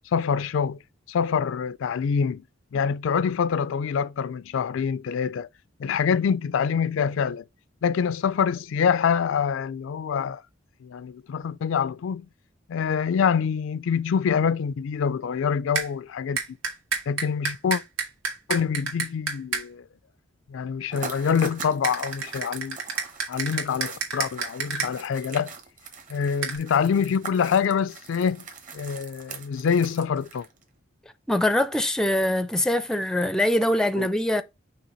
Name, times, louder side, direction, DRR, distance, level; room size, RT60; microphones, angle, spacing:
voice 1, 0.1-0.8 1.1-2.4 2.7-5.5 5.8-7.4 7.8-10.4 10.8-12.3 12.7-16.6 17.1-17.8 18.5-19.8 20.5-22.8 23.3-25.5 26.1-28.4 28.7-30.5 34.0-34.1, left 6 dB, 70° left, 0.3 m, -25 dB
sound 1, 15.7-15.9 16.4-19.6 21.8-24.9 26.4-26.6, right 5 dB, 80° right, 1.8 m, -29 dB
sound 2, 20.9-30.6, right 5 dB, 40° right, 1.2 m, -41 dB
voice 2, 31.3-34.4, left 1 dB, 5° left, 0.4 m, -23 dB
5.7 x 3.2 x 5.4 m
head